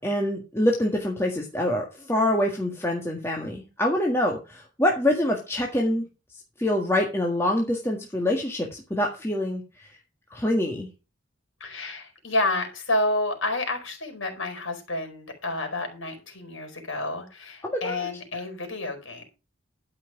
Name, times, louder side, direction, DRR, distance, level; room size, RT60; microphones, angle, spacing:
voice 1, 0.0-6.0 6.6-9.9 10.3-10.9 17.6-18.1, left 1 dB, 15° left, 0 dB, 1.7 m, -25 dB
voice 2, 11.6-19.2, left 2 dB, 75° left, 4 dB, 4.6 m, -29 dB
12.5 x 5.9 x 5.9 m, 0.30 s
head